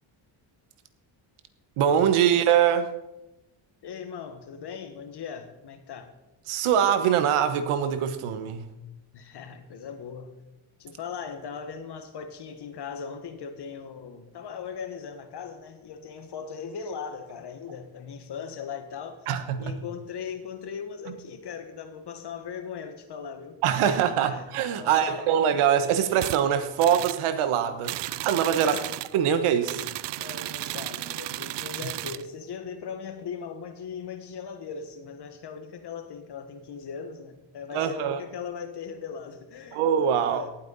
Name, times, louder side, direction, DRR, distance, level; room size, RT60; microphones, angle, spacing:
voice 1, 1.8-2.9 6.5-8.7 19.3-19.7 23.6-28.8 29.1-29.8 37.7-38.2 39.7-40.5, right 9 dB, 85° right, 10 dB, 1.3 m, -23 dB
voice 2, 3.8-6.1 9.1-10.3 10.8-19.3 19.6-24.5 24.8-25.4 28.6-28.9 30.2-39.8 40.2-40.5, left 6 dB, 50° left, 8 dB, 1.7 m, -39 dB
sound 1, 26.2-26.4 26.8-27.2 27.8-29.2 29.6-32.2, right 16 dB, 60° right, 0.5 m, -34 dB
18.0 x 8.6 x 4.1 m, 0.95 s
cardioid pair, 110°, 49 cm